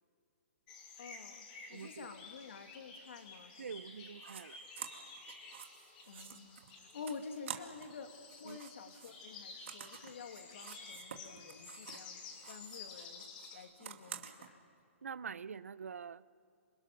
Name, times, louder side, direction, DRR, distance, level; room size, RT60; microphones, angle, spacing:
sound 1, 0.7-13.6, left 4 dB, 40° left, 6.0 m, -52 dB
voice 1, 1.0-3.7 6.1-12.2 12.5-14.6, left 5 dB, 65° left, 2.6 m, -50 dB
voice 2, 1.7-2.1 3.6-4.6 8.4-8.6 15.0-16.2, right 6 dB, 90° right, 0.7 m, -45 dB
sound 2, 4.2-4.4 4.7-8.0 8.2-12.1 12.4-14.5, right 8 dB, 60° right, 2.2 m, -50 dB
28.0 x 26.5 x 6.1 m
hypercardioid pair, 155°, 7 cm